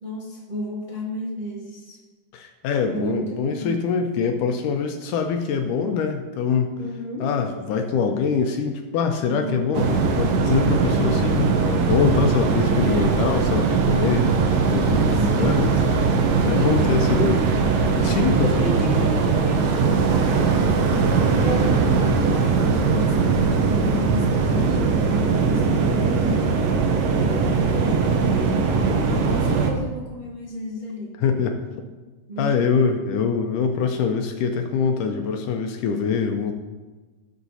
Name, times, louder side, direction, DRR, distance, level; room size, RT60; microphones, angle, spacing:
voice 1, 0.0-2.0 2.9-3.8 6.8-7.3 9.2-9.6 12.7-13.0 15.2-16.0 16.3-17.6 18.4-26.4 27.5-28.7 29.0-31.1 32.3-32.7, equal, 45° right, -7 dB, 0.6 m, -33 dB
voice 2, 2.3-6.7 7.2-17.4 18.0-18.5 18.8-19.0 28.9-29.3 31.2-31.6 32.4-36.5, left 6 dB, 80° left, 4 dB, 2.1 m, -24 dB
sound 1, 9.7-29.7, right 5 dB, 70° right, 1.7 m, -20 dB
18.0 x 6.1 x 2.8 m, 1.3 s
omnidirectional pair, 4.1 m